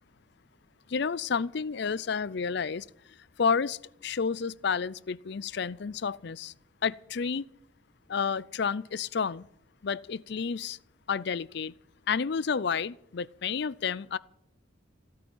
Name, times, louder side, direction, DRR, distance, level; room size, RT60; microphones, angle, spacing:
voice 1, 0.9-6.5 6.8-7.5 8.1-9.5 9.8-10.8 11.1-11.7 12.1-14.2, left 6 dB, 60° left, 0.5 m, -30 dB
16.0 x 8.8 x 8.9 m
head